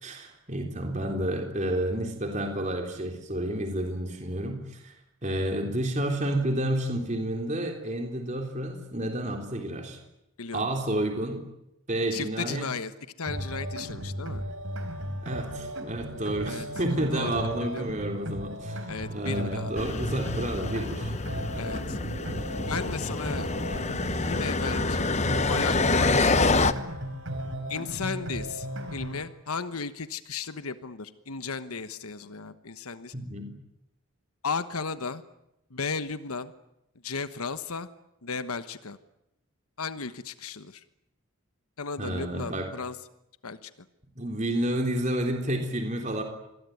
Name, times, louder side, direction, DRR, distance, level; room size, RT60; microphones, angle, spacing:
voice 1, 0.0-4.9 5.2-10.0 10.5-11.4 11.9-12.7 15.1-18.8 19.1-21.1 33.1-33.5 42.0-42.7 44.2-46.2, right 1 dB, 35° right, 3 dB, 3.7 m, -30 dB
voice 2, 12.1-14.4 16.4-16.7 16.9-17.3 17.6-17.9 18.9-19.7 21.5-22.0 22.7-23.6 24.2-25.0 25.5-26.7 27.7-33.1 34.4-35.2 35.7-36.5 37.0-37.9 38.2-39.0 39.8-40.8 41.8-43.0 43.4-43.7, left 5 dB, 85° left, 12 dB, 1.2 m, -35 dB
sound 1, 13.3-29.3, right 1 dB, 65° right, 4.3 m, -36 dB
sound 2, 19.8-26.7, left 3 dB, 30° left, 1.0 m, -27 dB
26.5 x 21.5 x 9.4 m, 0.86 s
head